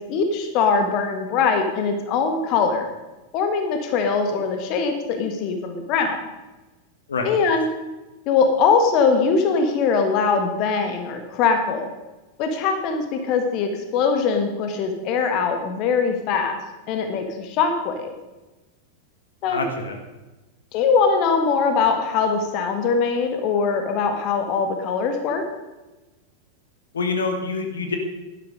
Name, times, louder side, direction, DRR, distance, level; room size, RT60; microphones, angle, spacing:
voice 1, 0.0-2.9 3.3-6.2 7.3-7.7 8.3-11.9 12.4-16.6 16.9-18.1 19.4-19.6 20.7-25.4, left 5 dB, 40° left, 6 dB, 1.6 m, -22 dB
voice 2, 19.5-20.0 26.9-28.0, left 4 dB, 70° left, 6 dB, 1.7 m, -26 dB
11.5 x 11.5 x 5.2 m, 1.1 s
figure-of-eight pair, 90°, 0 cm